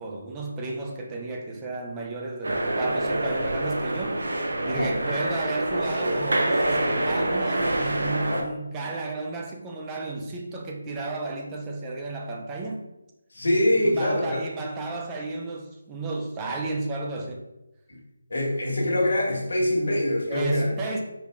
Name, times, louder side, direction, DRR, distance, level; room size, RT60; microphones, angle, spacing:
voice 1, 0.0-4.2 4.7-12.8 13.8-17.5 20.3-21.0, right 2 dB, 15° right, 1 dB, 0.5 m, -33 dB
sound 1, 2.4-8.4, right 1 dB, 70° right, 0.8 m, -26 dB
voice 2, 13.3-14.4 17.9-18.0 18.3-20.7, left 1 dB, 70° left, -3 dB, 1.5 m, -24 dB
4.5 x 2.3 x 3.5 m, 0.96 s
figure-of-eight pair, 160°, 0 cm